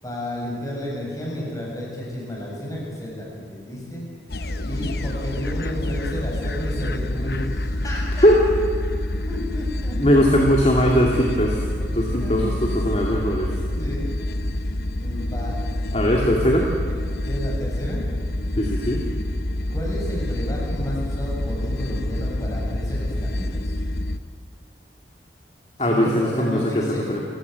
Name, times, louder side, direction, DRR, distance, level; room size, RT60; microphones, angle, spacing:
voice 1, 0.0-4.1 4.6-8.3 9.3-10.2 12.1-13.0 13.7-14.1 14.4-16.3 17.2-18.1 19.7-23.7 25.8-27.2, left 1 dB, 20° left, -3 dB, 7.5 m, -32 dB
sound 1, 4.3-24.2, left 1 dB, 60° left, 1.0 m, -27 dB
voice 2, 10.0-11.6 11.9-13.5 15.9-16.6 18.6-19.0 25.8-27.2, equal, 35° left, -1 dB, 2.4 m, -20 dB
30.0 x 16.5 x 8.2 m, 2.2 s
head